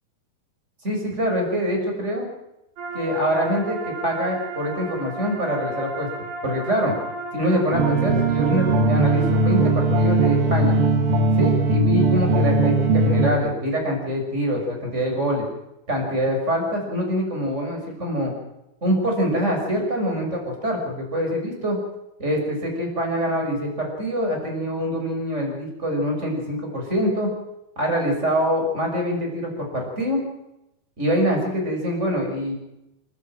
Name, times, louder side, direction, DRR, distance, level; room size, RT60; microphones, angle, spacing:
voice 1, 0.8-2.3 2.9-6.1 6.4-7.0 7.3-10.8 11.4-15.5 15.9-18.3 18.8-21.8 22.2-27.3 27.8-30.2 31.0-32.5, equal, 15° right, 1 dB, 6.5 m, -24 dB
sound 1, 2.8-10.4, right 3 dB, 85° right, 4.7 m, -34 dB
sound 2, 7.7-13.3, right 2 dB, 70° right, 3.8 m, -19 dB
29.5 x 11.0 x 9.1 m, 0.88 s
omnidirectional pair, 4.4 m